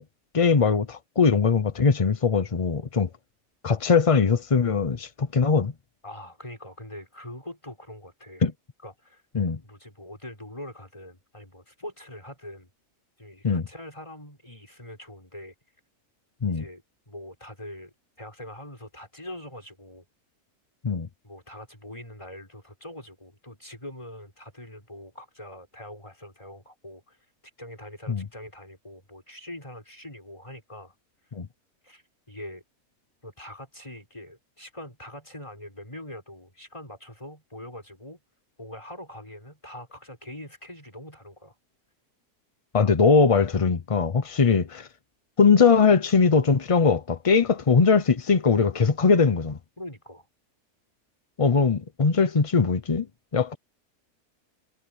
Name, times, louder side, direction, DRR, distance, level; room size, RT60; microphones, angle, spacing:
voice 1, 0.3-3.1 3.6-5.7 8.4-8.5 9.3-9.6 13.4-13.7 16.4-16.6 20.8-21.1 28.1-28.2 31.3-31.5 42.7-44.9 45.4-49.6 51.4-53.1 53.3-53.5, left 5 dB, 40° left, 0.5 m, -21 dB
voice 2, 6.0-8.5 8.8-9.2 9.6-12.7 13.2-15.5 16.5-20.0 21.2-27.2 27.6-30.9 31.8-32.6 33.2-38.2 38.6-41.6 49.8-50.3, left 1 dB, 20° left, 6.5 m, -43 dB
omnidirectional pair, 1.7 m